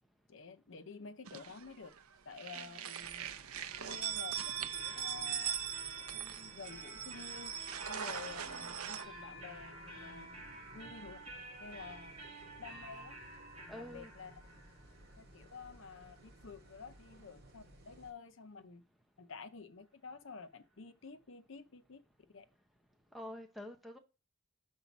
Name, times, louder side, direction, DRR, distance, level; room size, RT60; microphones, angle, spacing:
voice 1, 0.3-1.9 2.3-3.3 3.8-5.6 6.1-7.5 7.9-10.3 10.7-11.2 11.6-12.1 12.6-13.2 13.8-14.4 15.2-18.8 19.2-22.0 22.3-22.5, left 5 dB, 60° left, 0.6 m, -50 dB
sound 1, 1.3-2.0 2.3-9.1, right 10 dB, 80° right, 0.6 m, -41 dB
sound 2, 3.0-18.1, right 1 dB, 45° right, 1.7 m, -59 dB
sound 3, 3.9-17.5, right 2 dB, 30° right, 2.7 m, -51 dB
voice 2, 13.7-14.1 23.1-24.0, left 1 dB, ahead, 0.8 m, -47 dB
5.6 x 4.1 x 5.9 m
head